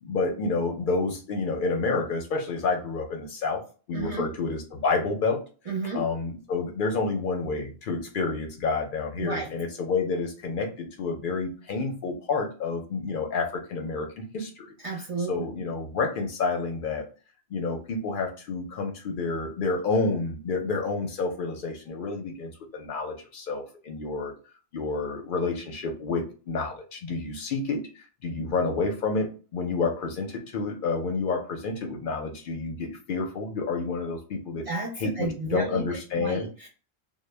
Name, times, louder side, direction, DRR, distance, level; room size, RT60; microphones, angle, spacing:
voice 1, 0.0-3.6 3.9-5.4 5.9-14.8 15.3-17.1 17.5-24.3 24.7-34.7 35.0-36.5, left 4 dB, 60° left, 2 dB, 0.6 m, -29 dB
voice 2, 3.9-4.3 5.7-6.0 9.2-9.5 14.8-15.4 34.7-35.8 36.2-36.7, right 3 dB, 50° right, -2 dB, 0.4 m, -32 dB
2.1 x 2.0 x 3.1 m, 0.36 s
omnidirectional pair, 1.0 m